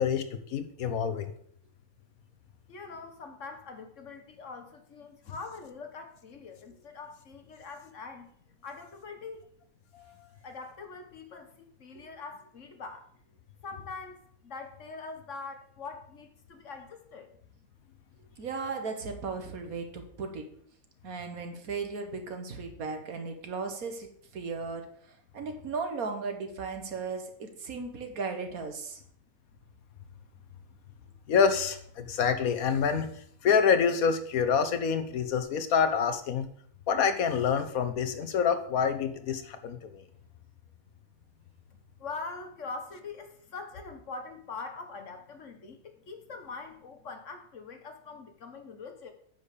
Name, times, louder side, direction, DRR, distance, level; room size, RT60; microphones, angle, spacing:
voice 1, 0.0-1.3 9.9-10.3 31.3-33.1 33.4-36.5 36.9-40.0, left 6 dB, 90° left, 9 dB, 1.4 m, -27 dB
voice 2, 2.7-8.3 8.6-9.5 10.4-13.1 13.6-17.3 41.7-49.1, left 4 dB, 60° left, 6 dB, 1.6 m, -43 dB
voice 3, 18.4-20.5 21.0-24.1 24.3-29.0, right 4 dB, 85° right, 5 dB, 1.8 m, -36 dB
8.9 x 5.5 x 6.7 m, 0.63 s
omnidirectional pair, 1.5 m